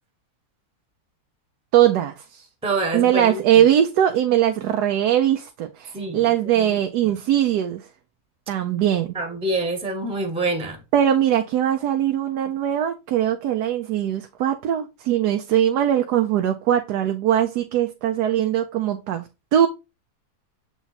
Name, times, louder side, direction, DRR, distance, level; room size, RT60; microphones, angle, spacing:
voice 1, 1.7-2.5 2.9-7.9 8.5-9.2 10.9-19.7, right 10 dB, 90° right, 1.2 m, -21 dB
voice 2, 2.6-3.6 5.9-6.3 6.5-6.8 7.0-7.1 9.1-10.8, right 2 dB, 5° right, 1.0 m, -26 dB
7.2 x 3.5 x 4.0 m
omnidirectional pair, 1.7 m